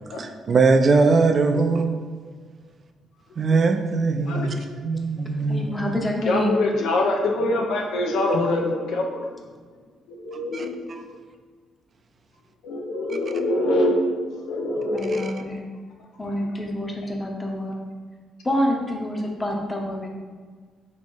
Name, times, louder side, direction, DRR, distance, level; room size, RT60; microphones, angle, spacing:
voice 1, 0.2-2.0 3.4-6.0 10.3-11.0 15.1-15.3, right 4 dB, 45° right, 5 dB, 0.4 m, -21 dB
voice 2, 5.5-6.6 14.9-15.6 16.2-17.8 18.4-20.1, equal, 20° left, 1 dB, 0.7 m, -27 dB
voice 3, 6.2-9.3 10.1-10.8 12.6-14.0 14.5-15.3, left 2 dB, 85° left, 1 dB, 0.6 m, -24 dB
3.1 x 3.0 x 4.4 m, 1.5 s
cardioid pair, 90°, 0 cm